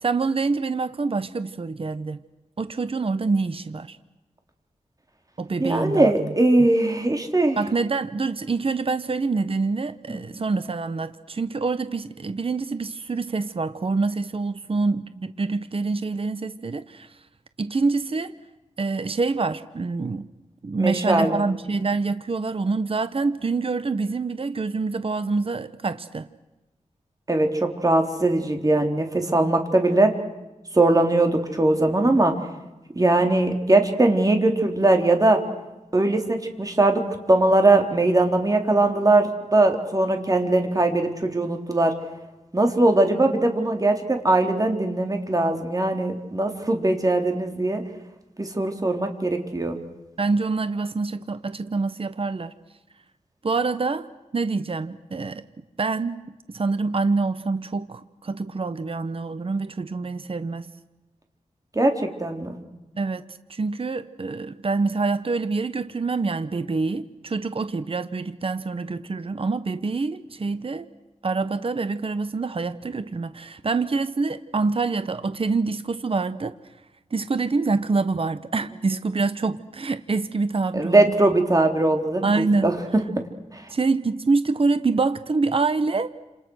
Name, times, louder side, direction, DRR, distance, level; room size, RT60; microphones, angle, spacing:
voice 1, 0.0-2.2 2.6-4.0 5.4-6.3 7.6-17.1 17.6-18.3 18.8-20.3 20.6-26.3 50.2-52.5 53.4-54.1 54.3-55.4 55.8-56.2 56.5-60.7 63.0-63.2 63.5-70.9 71.2-76.5 77.1-81.0 82.2-82.8 83.7-86.1, right 3 dB, 45° right, 1.1 m, -26 dB
voice 2, 5.6-7.6 10.1-10.2 20.8-21.4 27.3-30.1 30.7-32.3 33.0-35.4 35.9-37.0 37.3-41.9 42.5-47.8 48.4-49.8 61.8-62.6 80.7-82.3 82.6-82.7, right 2 dB, 25° right, 3.9 m, -20 dB
30.0 x 28.0 x 6.5 m
wide cardioid pair, 95°, 13 cm